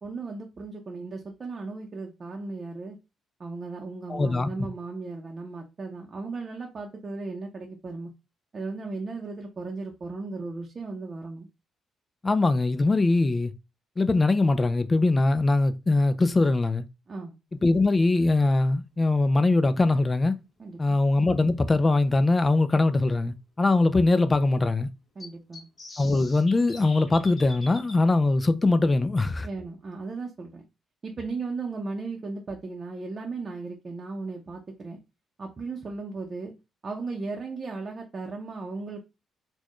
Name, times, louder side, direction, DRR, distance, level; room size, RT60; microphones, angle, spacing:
voice 1, 0.0-3.0 3.4-8.1 8.5-11.5 17.1-17.4 20.6-21.0 25.2-25.7 29.4-30.6 31.0-35.0 35.4-36.5 36.8-39.0, right 3 dB, 40° right, 0.7 m, -36 dB
voice 2, 4.1-4.7 12.2-13.5 14.0-16.8 17.6-20.3 20.8-24.9 26.0-29.5, left 2 dB, 25° left, 0.4 m, -22 dB
sound 1, 22.7-22.8 25.2-28.0, left 2 dB, 40° left, 1.3 m, -44 dB
4.3 x 2.3 x 3.0 m
cardioid pair, 90°, 0 cm